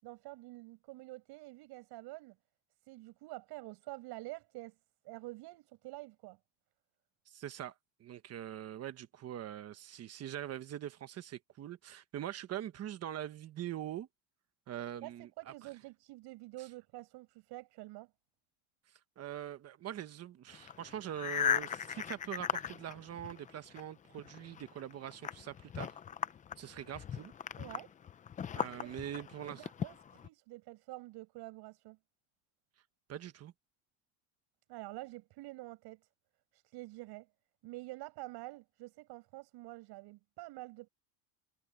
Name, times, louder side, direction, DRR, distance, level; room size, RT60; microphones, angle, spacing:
voice 1, 0.0-2.4 2.8-4.8 5.0-6.4 15.0-18.1 27.6-27.9 28.8-28.9 29.4-32.0 34.7-36.0 36.5-37.3 37.6-40.9, right 20 dB, 55° right, 7.6 m, -48 dB
voice 2, 7.3-7.7 8.0-14.1 14.7-15.7 19.2-26.0 26.6-27.3 28.5-29.6 33.1-33.5, right 11 dB, 35° right, 1.2 m, -43 dB
sound 1, 20.5-23.8 24.1-30.3, left 8 dB, 15° left, 0.5 m, -38 dB
cardioid pair, 145°, 46 cm